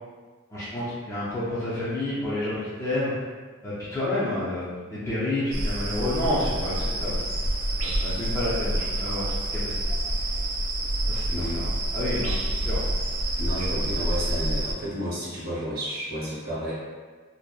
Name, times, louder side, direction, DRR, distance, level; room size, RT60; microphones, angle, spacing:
voice 1, 0.5-3.1 3.6-7.2 7.7-9.7 11.1-11.7 11.9-12.8 13.5-13.8, left 1 dB, 15° left, -10 dB, 0.4 m, -30 dB
sound 1, 5.5-14.7, right 1 dB, 75° right, 0.3 m, -27 dB
voice 2, 11.3-11.6 13.4-16.7, equal, 45° right, -7 dB, 0.8 m, -31 dB
2.6 x 2.1 x 2.3 m, 1.5 s
head